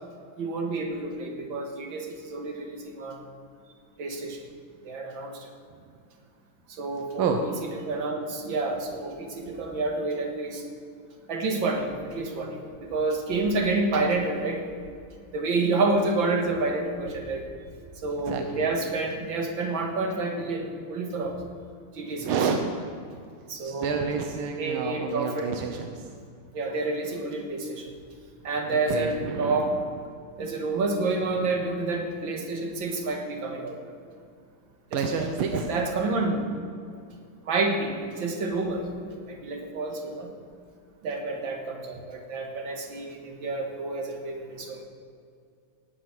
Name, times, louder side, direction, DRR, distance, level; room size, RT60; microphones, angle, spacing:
voice 1, 0.4-3.2 4.0-4.4 4.8-5.5 6.7-10.6 11.3-14.7 15.3-17.4 18.0-21.4 21.9-22.3 23.5-24.2 24.6-25.5 26.5-27.9 28.4-29.8 30.4-33.8 34.9-36.5 37.5-40.3 41.0-44.8, right 3 dB, 70° right, 3 dB, 2.4 m, -29 dB
voice 2, 18.3-18.7 22.2-22.7 23.6-26.2 28.7-29.7 34.9-35.7, right 5 dB, 90° right, 5 dB, 1.7 m, -29 dB
18.0 x 8.2 x 6.0 m, 2.3 s
omnidirectional pair, 2.2 m